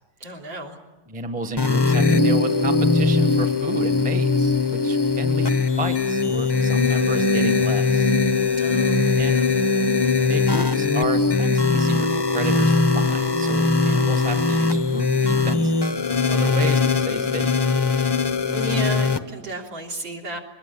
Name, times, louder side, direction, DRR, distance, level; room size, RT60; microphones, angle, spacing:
voice 1, 0.2-0.8 8.6-9.5 18.5-20.4, right 2 dB, 60° right, 0 dB, 4.2 m, -33 dB
voice 2, 1.1-8.1 9.1-9.4 10.3-17.5, right 2 dB, 5° right, 5 dB, 1.2 m, -32 dB
sound 1, 1.6-19.2, left 3 dB, 25° left, 0.5 m, -20 dB
23.0 x 20.5 x 9.9 m, 1.1 s
omnidirectional pair, 2.4 m